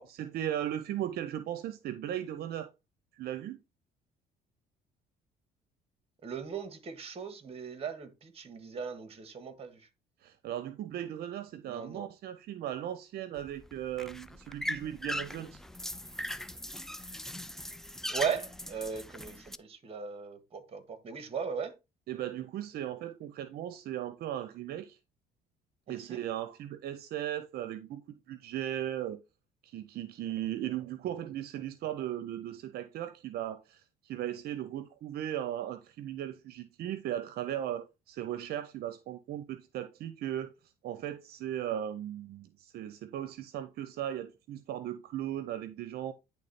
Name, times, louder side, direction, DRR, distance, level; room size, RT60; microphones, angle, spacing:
voice 1, 0.1-2.7 3.1-3.6 10.2-15.6 22.1-25.0 25.9-28.0 28.3-29.2 29.6-46.1, right 11 dB, 70° right, 0.7 m, -37 dB
voice 2, 6.2-9.8 11.7-12.1 18.1-21.7 26.1-26.2, right 6 dB, 35° right, 1.7 m, -38 dB
sound 1, 13.4-19.6, left 1 dB, ahead, 0.4 m, -40 dB
10.0 x 3.5 x 4.2 m
cardioid pair, 110°, 17 cm